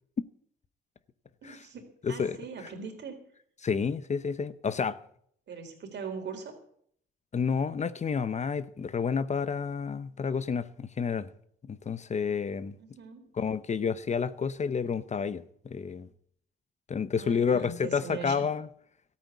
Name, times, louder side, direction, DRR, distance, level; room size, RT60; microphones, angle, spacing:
voice 1, 1.4-3.2 5.5-6.5 12.8-13.3 17.2-18.5, right 5 dB, 60° right, 3.9 m, -41 dB
voice 2, 2.0-2.4 3.6-5.0 7.3-11.3 11.6-12.7 13.4-16.1 16.9-18.7, left 6 dB, 35° left, 0.7 m, -30 dB
13.5 x 8.7 x 8.2 m
cardioid pair, 90°, 20 cm